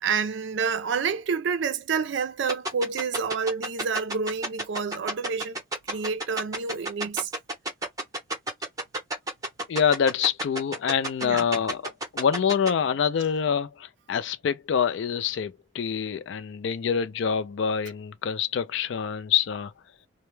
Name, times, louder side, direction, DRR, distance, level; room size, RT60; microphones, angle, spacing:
voice 1, 0.0-5.6 5.9-7.3 11.2-11.5, right 5 dB, 65° right, 0.4 m, -28 dB
sound 1, 2.5-12.7, right 1 dB, 15° right, 0.8 m, -29 dB
voice 2, 9.7-19.7, left 7 dB, 70° left, 0.3 m, -26 dB
2.2 x 2.1 x 3.0 m
head